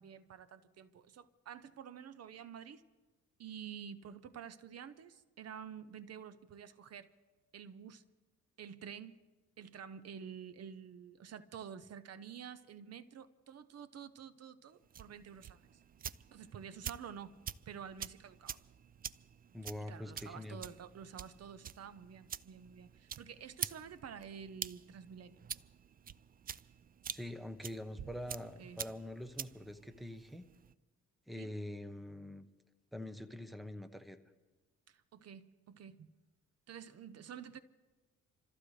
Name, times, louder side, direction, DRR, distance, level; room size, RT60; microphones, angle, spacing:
voice 1, 0.0-2.8 3.4-7.1 7.5-8.0 8.6-9.2 9.6-15.7 16.3-17.4 17.7-18.6 19.8-25.4 28.6-28.8 31.4-31.5 34.9-36.1 36.7-37.6, right 8 dB, 55° right, 0.8 m, -49 dB
sound 1, 14.8-30.7, right 8 dB, 30° right, 0.4 m, -47 dB
voice 2, 19.5-20.6 27.1-30.5 31.3-32.5 32.9-34.2, left 1 dB, ahead, 1.0 m, -45 dB
27.5 x 14.5 x 3.3 m
cardioid pair, 90°, 30 cm